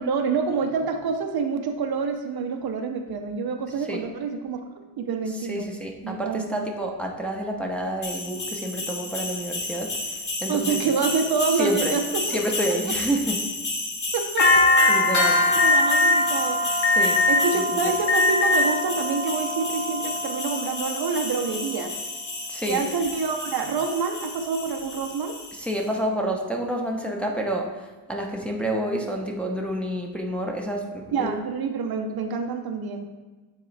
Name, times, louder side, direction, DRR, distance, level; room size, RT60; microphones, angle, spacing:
voice 1, 0.0-4.6 5.0-5.7 6.0-6.7 10.5-12.4 12.7-13.0 14.1-14.6 15.5-16.6 17.3-21.9 22.7-25.3 31.1-33.0, right 5 dB, 55° right, 5 dB, 0.6 m, -27 dB
voice 2, 5.5-9.9 10.4-10.8 11.6-12.0 12.3-13.4 14.9-15.5 17.0-17.2 17.5-17.6 22.5-22.8 25.6-27.7 28.1-31.3, equal, 5° left, 0 dB, 0.7 m, -28 dB
sound 1, 8.0-25.7, left 1 dB, 40° left, 1.5 m, -27 dB
Alarm, 14.4-14.9 15.6-16.1 16.8-17.5 18.0-18.6, left 3 dB, 75° left, 0.8 m, -19 dB
8.5 x 3.7 x 3.3 m, 1.3 s
cardioid pair, 105°, 44 cm